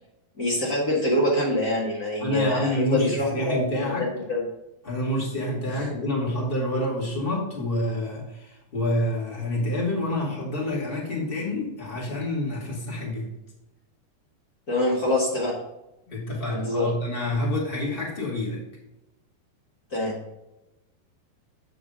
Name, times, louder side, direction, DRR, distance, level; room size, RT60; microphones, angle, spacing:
voice 1, 0.4-4.4 5.7-5.9 14.7-15.6 16.5-16.9 19.9-20.2, left 1 dB, 85° left, -6 dB, 0.8 m, -25 dB
voice 2, 2.2-4.1 4.8-13.3 16.1-18.6, left 1 dB, 25° left, -4 dB, 1.2 m, -28 dB
8.0 x 6.0 x 3.8 m, 0.95 s
omnidirectional pair, 4.8 m